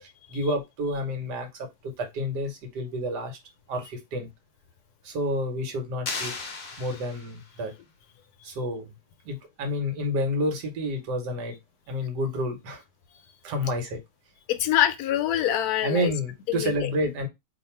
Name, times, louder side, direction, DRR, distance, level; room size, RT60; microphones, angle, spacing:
voice 1, 0.0-3.4 3.7-4.3 5.0-6.3 6.8-7.7 8.4-8.9 9.2-11.6 11.9-12.8 13.4-14.0 15.8-17.3, equal, 85° right, 1.5 m, -29 dB
sound 1, 6.0-7.6, left 4 dB, 50° left, 0.7 m, -35 dB
voice 2, 14.5-16.1 16.5-16.9, left 12 dB, 75° left, 1.0 m, -25 dB
2.8 x 2.6 x 4.2 m
omnidirectional pair, 1.8 m